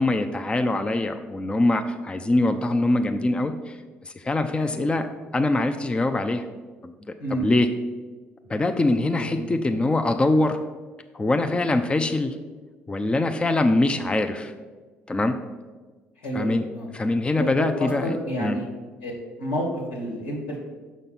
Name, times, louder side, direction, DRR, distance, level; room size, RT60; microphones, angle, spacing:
voice 1, 0.0-5.1 5.3-6.5 6.8-6.9 7.4-7.7 8.5-10.6 11.1-12.4 12.9-14.5 15.1-15.3 16.3-16.6 16.9-18.6, left 2 dB, 20° left, 7 dB, 0.6 m, -23 dB
voice 2, 4.6-4.9 7.2-7.5 9.2-9.5 16.2-16.9 17.3-18.7 19.0-20.6, equal, 90° left, -2 dB, 2.2 m, -30 dB
6.1 x 5.3 x 5.9 m, 1.3 s
hypercardioid pair, 60°, 5 cm